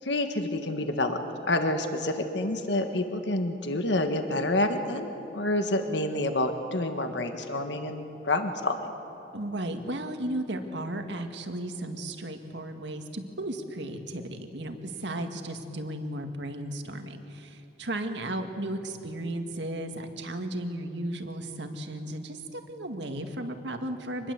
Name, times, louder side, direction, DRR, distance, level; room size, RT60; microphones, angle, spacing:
voice 1, 0.0-8.9, left 1 dB, 70° left, 6 dB, 1.5 m, -28 dB
voice 2, 9.3-24.3, right 1 dB, 70° right, 6 dB, 2.0 m, -35 dB
26.0 x 20.5 x 8.1 m, 2.9 s
head